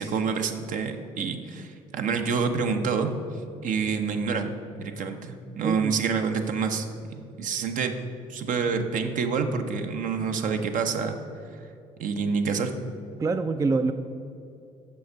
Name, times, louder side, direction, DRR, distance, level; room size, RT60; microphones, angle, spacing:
voice 1, 0.0-3.1 3.6-7.9 8.3-11.1 12.0-12.7, right 5 dB, 55° right, 6 dB, 0.7 m, -27 dB
voice 2, 5.6-6.0 13.2-13.9, right 4 dB, 20° right, 9 dB, 0.3 m, -25 dB
6.6 x 5.4 x 4.5 m, 2.6 s
hypercardioid pair, 55°, 16 cm